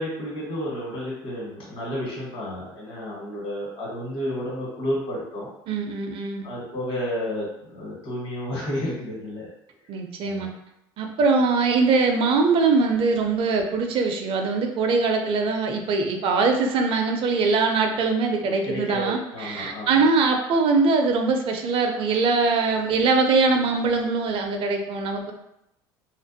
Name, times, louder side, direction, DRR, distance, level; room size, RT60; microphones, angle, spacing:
voice 1, 0.0-5.5 6.4-9.5 10.2-10.5 18.6-20.0, equal, 60° left, -4 dB, 1.3 m, -31 dB
voice 2, 5.7-6.5 9.9-10.5 11.0-25.3, right 4 dB, 50° right, 4 dB, 0.5 m, -22 dB
2.5 x 2.2 x 2.6 m, 0.81 s
hypercardioid pair, 80°, 12 cm